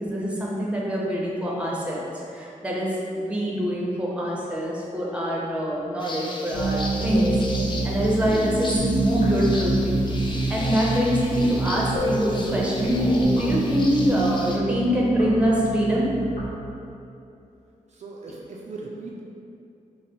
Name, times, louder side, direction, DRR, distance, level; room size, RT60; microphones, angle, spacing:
voice 1, 0.0-7.4 7.8-10.0 10.5-16.1, equal, 10° right, -4 dB, 0.7 m, -24 dB
sound 1, 6.0-14.6, left 2 dB, 35° left, 0.4 m, -37 dB
sound 2, 6.5-16.4, right 2 dB, 80° left, 1.2 m, -26 dB
voice 2, 17.9-19.2, right 3 dB, 55° right, -3 dB, 0.4 m, -38 dB
5.6 x 2.1 x 3.0 m, 2.7 s
wide cardioid pair, 120°, 14 cm